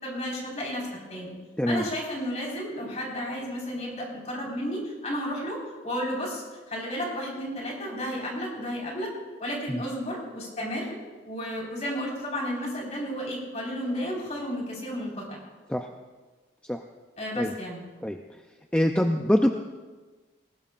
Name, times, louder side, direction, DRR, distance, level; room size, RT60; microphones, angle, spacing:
voice 1, 0.0-1.3 1.7-9.1 9.4-11.0 11.2-15.2 17.2-17.8, equal, 35° left, -3 dB, 4.5 m, -32 dB
voice 2, 18.7-19.5, equal, 5° left, 4 dB, 0.4 m, -24 dB
19.5 x 19.0 x 2.5 m, 1.3 s
head